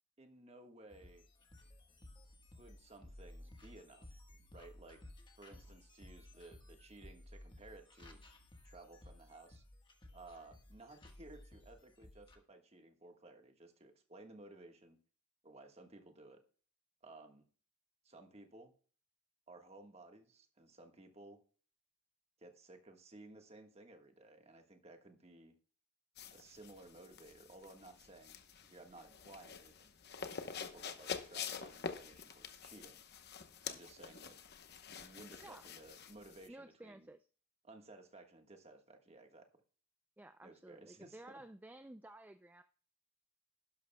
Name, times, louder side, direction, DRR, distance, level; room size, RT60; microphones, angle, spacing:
voice 1, 0.2-1.3 2.6-4.2 4.5-5.1 5.4-8.2 8.6-9.6 10.1-15.0 15.4-16.4 17.0-17.5 18.0-18.7 19.5-21.4 22.4-25.5 26.3-29.9 30.4-33.0 33.7-34.4 35.0-37.1 37.6-39.5 40.4-41.2, right 2 dB, 30° right, 4 dB, 1.4 m, -57 dB
sound 1, 0.9-12.4, left 1 dB, 20° left, 1.3 m, -57 dB
sound 2, 26.2-36.5, left 6 dB, 50° left, 0.9 m, -47 dB
voice 2, 36.5-37.3 40.2-42.6, right 1 dB, 10° right, 9 dB, 0.3 m, -54 dB
11.5 x 11.5 x 2.2 m, 0.41 s
head